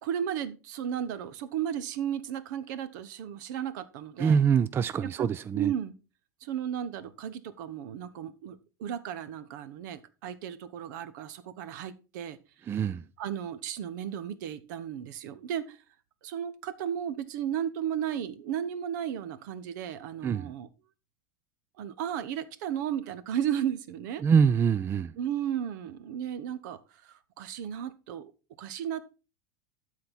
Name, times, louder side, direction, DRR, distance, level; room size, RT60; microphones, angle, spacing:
voice 1, 0.0-4.4 5.6-5.9 6.4-12.4 13.2-15.8 16.2-20.7 21.8-24.2 25.2-28.3 28.6-29.1, right 9 dB, 70° right, 0.9 m, -34 dB
voice 2, 4.2-5.7 12.7-13.0 20.2-20.5 24.2-25.1, right 6 dB, 25° right, 0.3 m, -24 dB
12.5 x 4.3 x 4.2 m
supercardioid pair, 115°, 10 cm